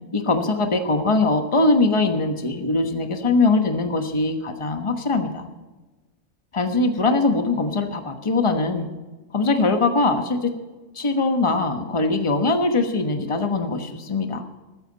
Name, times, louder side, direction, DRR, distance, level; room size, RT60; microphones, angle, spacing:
voice 1, 0.1-5.5 6.5-8.9 9.3-10.5 10.9-14.4, left 3 dB, 25° left, 6 dB, 1.2 m, -21 dB
14.5 x 14.0 x 4.1 m, 1.2 s
omnidirectional pair, 1.4 m